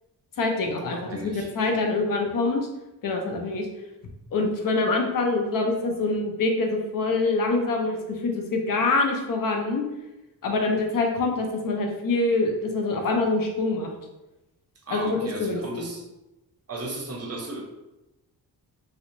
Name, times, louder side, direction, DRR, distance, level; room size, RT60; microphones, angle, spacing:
voice 1, 0.4-2.6 3.0-3.7 4.3-8.0 8.2-9.8 10.4-13.9 14.9-15.9, left 3 dB, 50° left, 3 dB, 0.6 m, -25 dB
voice 2, 0.9-1.5 14.9-16.0 16.7-17.6, right 2 dB, 35° right, 1 dB, 0.7 m, -35 dB
2.7 x 2.1 x 2.5 m, 0.97 s
cardioid pair, 65°, 42 cm